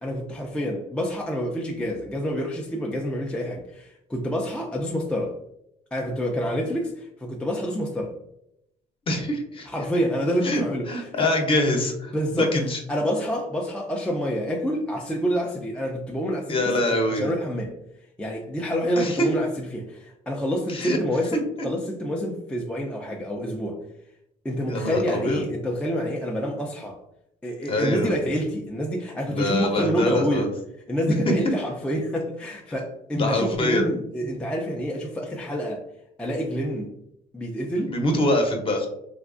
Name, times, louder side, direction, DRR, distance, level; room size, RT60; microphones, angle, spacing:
voice 1, 0.0-5.4 5.9-8.2 9.7-11.4 12.1-12.6 12.9-17.8 18.2-23.8 24.4-27.0 27.4-30.5 30.9-35.8 36.2-36.9 37.3-37.9, equal, 5° left, -1 dB, 0.3 m, -27 dB
voice 2, 9.1-9.7 10.4-12.8 16.5-17.3 19.0-19.3 20.7-21.0 21.6-21.7 24.7-25.4 27.7-28.1 29.3-30.5 31.1-31.2 31.4-31.5 33.1-33.9 37.9-38.9, left 1 dB, 30° left, 3 dB, 0.7 m, -24 dB
3.3 x 2.3 x 2.4 m, 0.79 s
cardioid pair, 110°, 17 cm